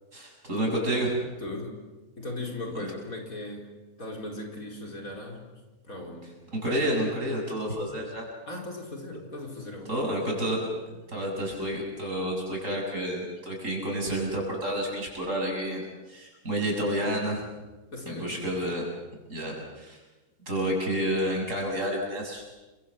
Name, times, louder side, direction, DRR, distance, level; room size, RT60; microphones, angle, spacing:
voice 1, 0.1-1.2 2.7-2.9 6.5-8.3 9.9-10.6 11.1-17.4 18.1-18.8 19.3-20.0 20.5-22.4, equal, 55° right, 0 dB, 7.8 m, -29 dB
voice 2, 1.4-1.9 2.2-6.3 8.5-10.0 17.9-18.4, left 2 dB, 70° left, 2 dB, 4.9 m, -38 dB
30.0 x 24.0 x 7.6 m, 1.2 s
omnidirectional pair, 1.6 m